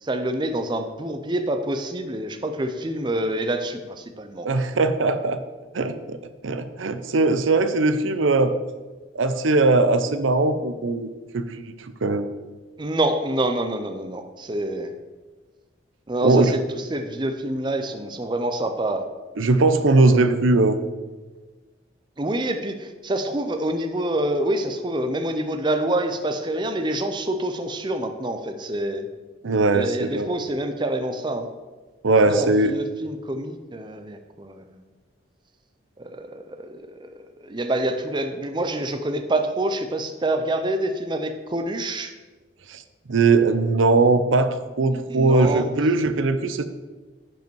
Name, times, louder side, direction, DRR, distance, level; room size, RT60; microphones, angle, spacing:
voice 1, 0.0-4.5 12.8-14.9 16.1-16.6 16.9-19.0 22.2-29.1 29.7-31.5 32.2-34.8 36.0-37.1 37.4-42.1 44.9-45.7, right 1 dB, 25° right, 6 dB, 0.5 m, -27 dB
voice 2, 4.4-5.4 5.7-6.2 6.4-8.6 9.1-11.1 11.3-11.7 12.0-12.2 16.2-16.5 19.4-20.8 29.4-30.3 32.0-32.7 42.7-42.8 43.1-46.6, right 3 dB, 80° right, 10 dB, 0.6 m, -20 dB
10.5 x 5.2 x 4.6 m, 1.3 s
head